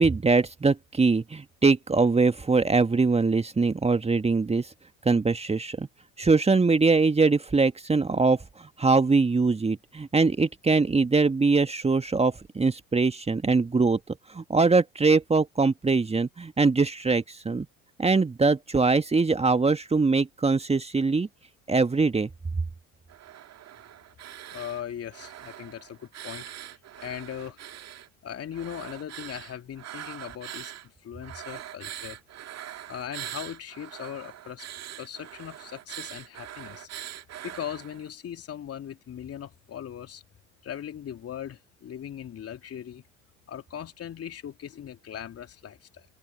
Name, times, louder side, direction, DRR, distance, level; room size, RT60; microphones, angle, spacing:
voice 1, 0.0-4.7 5.1-5.9 6.2-17.7 18.0-21.3 21.7-22.3, right 4 dB, 15° right, 1.9 m, -22 dB
sound 1, 23.1-24.8 25.1-28.1 28.5-30.9 31.2-38.1, right 12 dB, 40° right, 2.0 m, -42 dB
voice 2, 24.5-26.5 27.0-27.6 28.2-30.7 31.0-32.2 32.9-34.6 35.0-36.9 37.4-40.2 40.6-43.0 43.5-46.1, left 9 dB, 35° left, 2.9 m, -39 dB
figure-of-eight pair, 65°, 42 cm